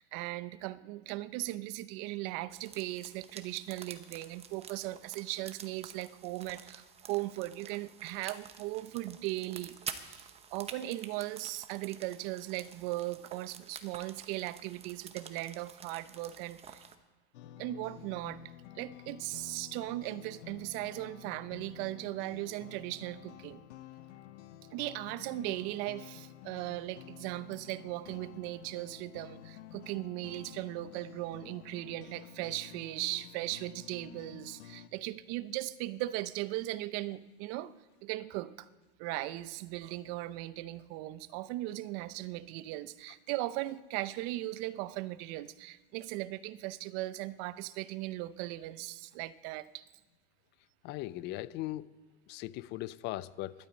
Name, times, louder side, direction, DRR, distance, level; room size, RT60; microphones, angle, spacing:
voice 1, 0.0-9.7 10.0-16.8 17.6-18.4 18.7-23.6 24.7-37.7 38.0-38.7 39.0-49.8, right 17 dB, 45° right, 16 dB, 0.7 m, -38 dB
sound 1, 2.5-17.0, right 7 dB, 20° right, 0.9 m, -49 dB
sound 2, 17.3-34.9, left 11 dB, 85° left, 0.8 m, -51 dB
voice 2, 50.8-51.9 52.3-53.5, left 16 dB, 35° left, 19 dB, 0.4 m, -38 dB
12.0 x 9.1 x 8.7 m, 1.2 s
supercardioid pair, 140°, 33 cm